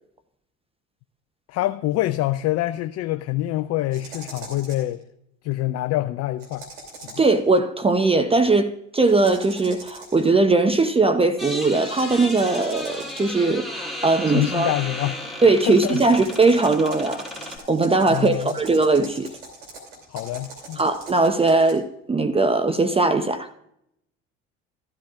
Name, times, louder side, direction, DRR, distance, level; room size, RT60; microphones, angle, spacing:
voice 1, 1.5-5.0 5.4-6.7 7.0-7.2 14.3-15.2 15.7-16.0 18.1-18.6 20.1-20.8, left 15 dB, 45° left, 0.5 m, -25 dB
sound 1, 3.9-4.9 6.4-7.4 9.0-10.3 11.9-13.5 15.5-21.7, right 3 dB, 80° right, 2.9 m, -42 dB
voice 2, 7.2-14.7 15.4-19.3 20.8-23.5, right 3 dB, 15° right, 0.7 m, -20 dB
sound 2, 11.4-17.6, left 1 dB, ahead, 2.7 m, -34 dB
14.0 x 12.5 x 2.4 m
hypercardioid pair, 65°, 36 cm